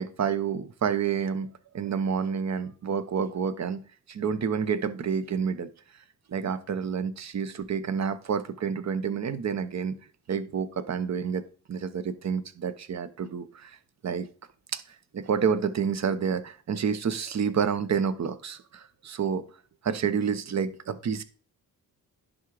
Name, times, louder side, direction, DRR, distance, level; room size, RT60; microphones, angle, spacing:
voice 1, 0.0-3.8 4.1-5.7 6.3-10.0 10.3-11.4 11.7-13.8 14.0-14.3 14.7-14.8 15.1-19.4 19.8-21.2, right 6 dB, 45° right, 0.9 m, -29 dB
10.5 x 3.8 x 4.8 m
cardioid pair, 80°, 37 cm